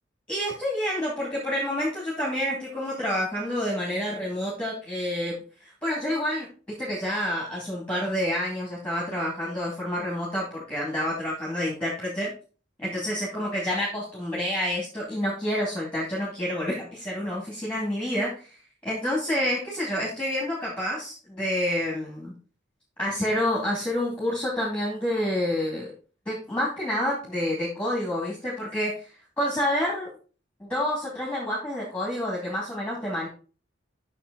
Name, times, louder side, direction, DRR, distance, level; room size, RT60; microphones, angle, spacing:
voice 1, 0.3-6.5 6.8-12.3 12.8-18.6 18.8-22.3 23.0-25.9 26.3-29.1 29.4-30.1 30.6-33.3, left 1 dB, 5° left, -4 dB, 2.5 m, -28 dB
8.4 x 6.2 x 4.0 m, 0.37 s
head